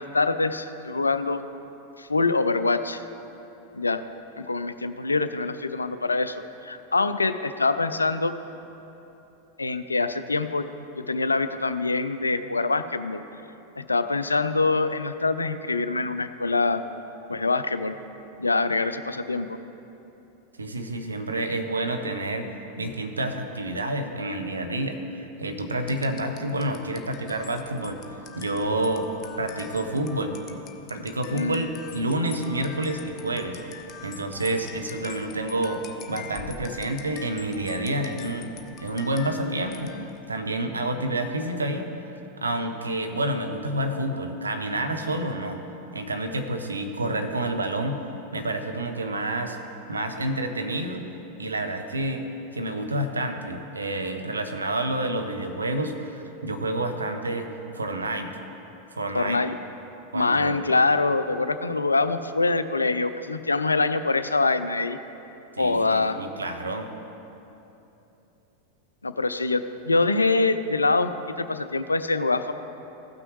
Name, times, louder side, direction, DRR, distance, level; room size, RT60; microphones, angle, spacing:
voice 1, 0.0-1.4 2.0-3.0 3.7-4.0 4.4-8.3 9.6-10.7 11.0-13.2 13.8-16.8 17.3-18.0 18.4-19.6 31.3-31.7 59.1-59.6 60.1-65.0 65.6-66.2 69.0-71.1 71.4-72.5, left 3 dB, 85° left, 11 dB, 0.4 m, -24 dB
voice 2, 20.6-22.5 22.8-29.1 29.4-30.4 30.9-33.6 34.0-38.5 38.8-39.9 40.3-41.9 42.4-45.6 45.9-48.0 48.3-49.6 49.9-51.1 51.4-52.2 52.5-57.5 57.7-58.3 58.9-59.4 60.1-60.6 65.5-66.9, right 1 dB, 80° right, 5 dB, 0.8 m, -29 dB
sound 1, 25.8-40.3, left 7 dB, 35° left, 0.7 m, -45 dB
16.0 x 6.1 x 3.2 m, 3.0 s
figure-of-eight pair, 90°, 0 cm